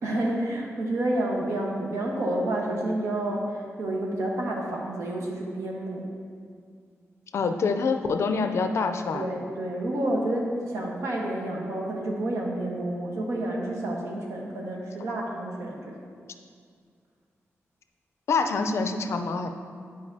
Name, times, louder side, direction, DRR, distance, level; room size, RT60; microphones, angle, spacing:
voice 1, 0.0-6.1 9.1-16.0, right 1 dB, 70° right, -1 dB, 1.1 m, -29 dB
voice 2, 7.3-9.2 18.3-19.5, left 4 dB, 60° left, 7 dB, 0.4 m, -26 dB
10.5 x 4.9 x 2.7 m, 2.2 s
wide cardioid pair, 175°, 5 cm